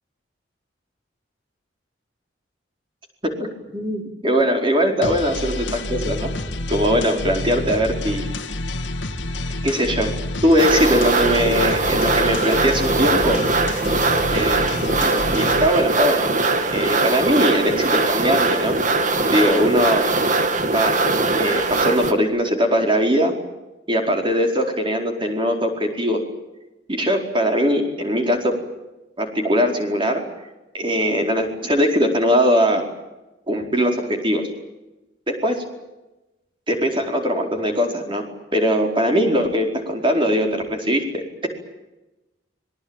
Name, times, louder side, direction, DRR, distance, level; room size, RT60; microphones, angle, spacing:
voice 1, 3.7-6.3 6.7-8.3 9.6-10.1 10.4-13.4 14.3-16.3 16.7-18.8 19.3-20.1 20.7-20.9 21.4-23.3 23.9-26.2 26.9-28.5 29.2-30.2 30.7-32.8 33.5-34.4 35.3-35.6 36.7-38.2 38.5-41.5, equal, 25° right, 2 dB, 4.8 m, -20 dB
sound 1, 5.0-15.7, left 2 dB, 80° left, 2.2 m, -28 dB
sound 2, 10.6-22.1, right 3 dB, 40° right, 2.2 m, -21 dB
26.0 x 20.5 x 9.1 m, 1.0 s
head